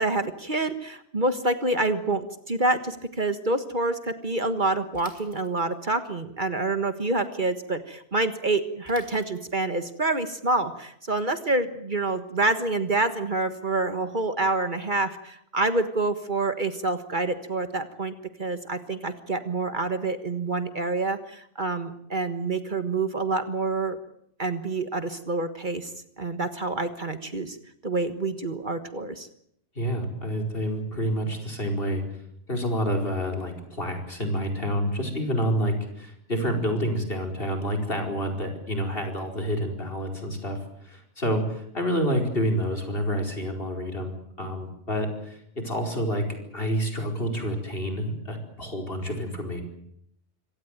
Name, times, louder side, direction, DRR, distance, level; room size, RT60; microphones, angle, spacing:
voice 1, 0.0-18.1 18.4-24.0 24.4-25.9 26.2-27.6 27.8-29.3, right 2 dB, 45° right, 10 dB, 1.6 m, -27 dB
Bicycle / Mechanisms, 4.9-5.9 8.8-9.8, left 1 dB, 30° left, 3.9 m, -50 dB
voice 2, 29.7-32.0 32.5-46.3 46.5-49.6, equal, 55° left, 4 dB, 5.0 m, -28 dB
26.0 x 17.0 x 9.0 m, 0.72 s
omnidirectional pair, 1.2 m